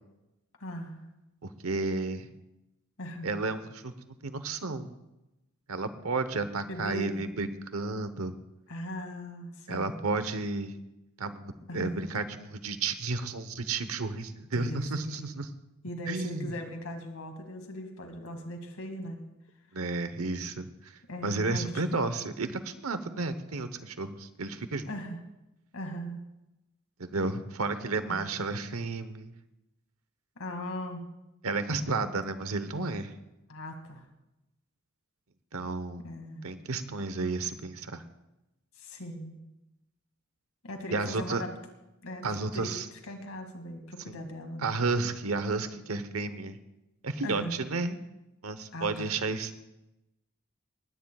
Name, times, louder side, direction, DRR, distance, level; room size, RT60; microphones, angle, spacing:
voice 1, 0.6-1.1 3.0-3.3 6.6-7.3 8.7-10.0 11.7-12.0 14.5-15.4 15.8-19.2 21.1-21.9 24.9-25.2 25.7-26.2 28.0-28.3 30.4-31.0 32.1-32.2 33.5-34.1 36.0-36.5 38.8-39.4 40.6-41.6 42.0-42.3 42.5-42.7 43.1-44.7 47.2-47.6 48.7-49.1, left 1 dB, 85° left, 4 dB, 2.2 m, -39 dB
voice 2, 1.4-2.3 3.2-3.9 4.2-4.9 5.7-8.4 9.7-10.7 11.2-15.5 16.1-16.5 19.7-20.9 21.2-24.9 27.0-29.3 31.4-33.1 35.5-36.0 36.4-38.0 40.9-41.4 42.2-42.9 44.1-44.2 44.6-46.6 47.0-48.0 48.4-49.5, right 3 dB, 85° right, 11 dB, 1.0 m, -32 dB
19.5 x 16.5 x 2.4 m, 0.95 s
head